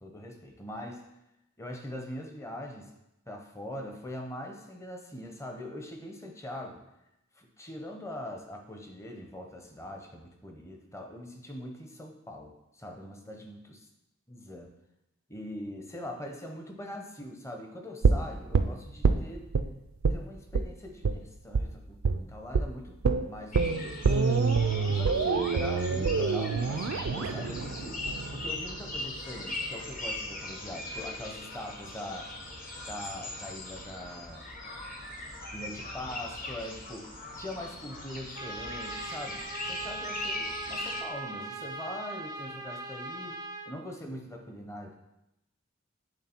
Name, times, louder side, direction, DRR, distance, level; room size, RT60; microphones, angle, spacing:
voice 1, 0.0-1.0 1.6-2.9 3.3-6.8 7.4-13.6 14.3-14.7 15.3-19.5 20.1-23.0 23.3-28.0 28.3-32.3 32.9-34.5 35.5-44.9, left 1 dB, 15° left, 3 dB, 0.7 m, -42 dB
sound 1, 18.0-19.7 20.0-20.2 20.5-20.7 21.0-21.2 21.5-21.7 22.0-22.2 22.5-22.7 23.0-29.0 29.3-29.4, right 4 dB, 80° right, 0.4 m, -26 dB
sound 2, 23.5-41.0, left 2 dB, 40° left, 1.0 m, -40 dB
Trumpet, 38.3-43.7, right 2 dB, 20° right, 0.4 m, -40 dB
8.0 x 3.6 x 4.4 m, 0.89 s
head